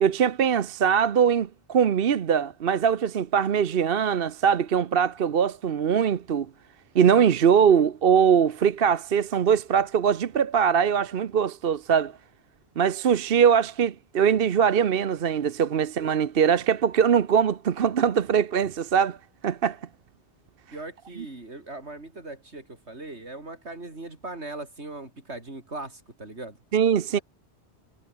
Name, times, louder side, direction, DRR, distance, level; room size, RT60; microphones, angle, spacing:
voice 1, 0.0-6.5 6.9-12.1 12.8-19.2 19.4-19.8 26.7-27.2, right 7 dB, 60° right, 1.0 m, -22 dB
voice 2, 20.7-26.6 27.1-27.2, right 2 dB, 85° right, 4.8 m, -39 dB
omnidirectional pair, 1.1 m